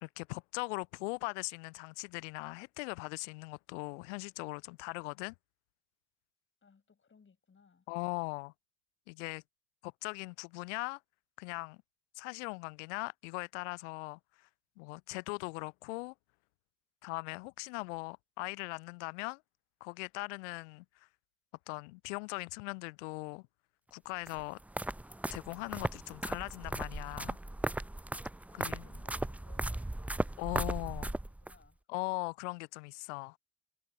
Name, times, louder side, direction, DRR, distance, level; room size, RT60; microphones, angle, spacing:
voice 1, 0.0-5.3 7.9-8.5 9.1-9.4 9.8-11.0 11.4-11.8 12.1-14.5 14.8-16.1 17.0-19.4 19.8-20.8 21.7-23.5 23.9-24.6 25.3-27.4 28.5-28.9 30.4-31.1 31.9-33.4, left 29 dB, 65° left, 0.7 m, -40 dB
voice 2, 6.6-7.9 28.5-30.5 30.9-31.8, left 5 dB, 30° left, 6.3 m, -66 dB
sound 1, 24.3-31.6, right 1 dB, 5° right, 0.6 m, -37 dB
figure-of-eight pair, 50°, 39 cm